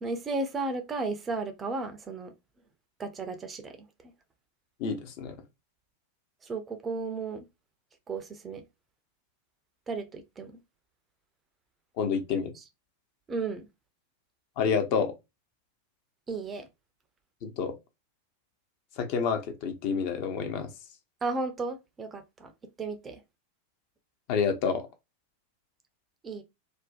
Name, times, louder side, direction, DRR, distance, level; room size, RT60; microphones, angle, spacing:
voice 1, 0.0-2.3 3.0-3.8 4.0-4.1 6.4-7.5 8.1-8.6 9.9-10.5 13.3-13.7 16.3-16.7 21.2-22.5 22.8-23.2 26.2-26.4, right 3 dB, 20° right, 0.4 m, -34 dB
voice 2, 4.8-5.4 12.0-12.5 14.6-15.1 17.4-17.7 19.0-20.7 24.3-24.9, left 6 dB, 45° left, 0.5 m, -28 dB
2.5 x 2.1 x 2.3 m
figure-of-eight pair, 90°, 0 cm